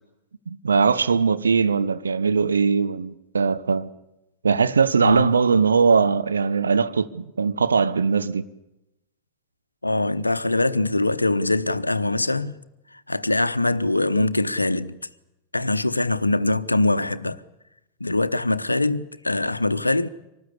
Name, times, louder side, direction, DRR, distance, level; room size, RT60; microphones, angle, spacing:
voice 1, 0.5-3.9 4.4-8.4, right 5 dB, 75° right, 1.0 m, -20 dB
voice 2, 9.8-12.6 13.1-15.0 15.5-17.4 18.0-20.1, left 2 dB, 85° left, 0.8 m, -23 dB
25.0 x 19.0 x 8.4 m
figure-of-eight pair, 90°, 0 cm